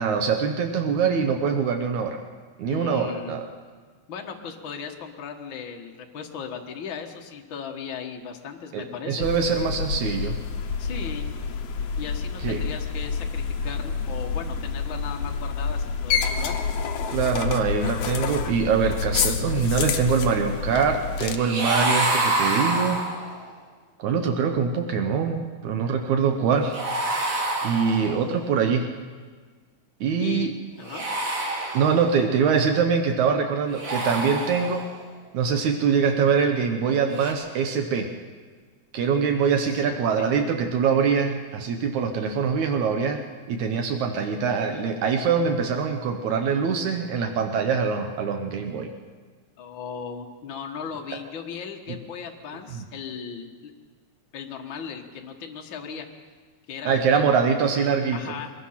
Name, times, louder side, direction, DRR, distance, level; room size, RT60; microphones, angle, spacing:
voice 1, 0.0-2.2 2.6-3.4 8.7-10.4 12.4-12.6 17.1-23.0 24.0-26.7 27.6-28.9 30.0-30.5 31.7-34.8 35.3-38.1 38.9-43.2 43.5-48.9 51.9-52.0 52.7-52.9 56.9-58.2, right 6 dB, 80° right, 5 dB, 2.5 m, -23 dB
voice 2, 2.6-3.5 4.1-9.3 10.8-11.3 12.0-16.6 30.2-31.0 39.6-40.5 49.6-53.7 54.3-56.1 56.7-57.3 58.1-58.5, left 6 dB, 45° left, 2 dB, 2.0 m, -37 dB
sound 1, 9.2-21.4, left 5 dB, 65° left, 2.0 m, -28 dB
sound 2, 21.3-23.5 26.7-28.4 30.8-32.3 33.7-35.0 37.1-37.3, right 2 dB, 60° right, 3.7 m, -27 dB
24.0 x 20.5 x 5.8 m, 1.5 s
omnidirectional pair, 3.4 m